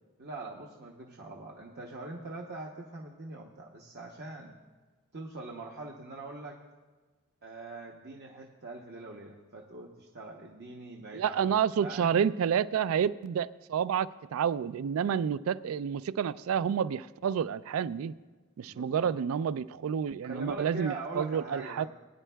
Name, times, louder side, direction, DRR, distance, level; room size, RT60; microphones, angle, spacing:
voice 1, 0.2-4.5 5.1-6.6 7.4-12.2 18.7-19.1 20.2-21.9, right 2 dB, 50° right, -1 dB, 0.8 m, -43 dB
voice 2, 11.1-18.1 18.6-21.9, right 8 dB, 70° right, 17 dB, 0.3 m, -29 dB
20.5 x 9.9 x 2.3 m, 1.3 s
head